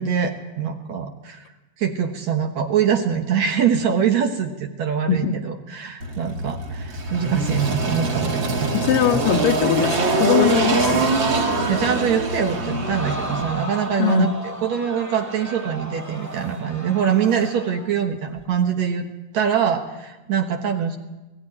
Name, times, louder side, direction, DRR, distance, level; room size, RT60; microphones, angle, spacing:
voice 1, 0.0-1.4 1.8-8.7 11.7-19.1 19.3-21.0, right 7 dB, 65° right, 4 dB, 2.3 m, -23 dB
Engine, 6.0-13.4, right 3 dB, 35° right, 3.0 m, -23 dB
voice 2, 8.7-11.2 14.0-14.3, left 8 dB, 80° left, 1 dB, 2.9 m, -21 dB
Crowd, 12.5-17.9 18.4-18.5, equal, 10° right, 0.9 m, -34 dB
21.5 x 15.0 x 9.8 m, 1.1 s
omnidirectional pair, 3.8 m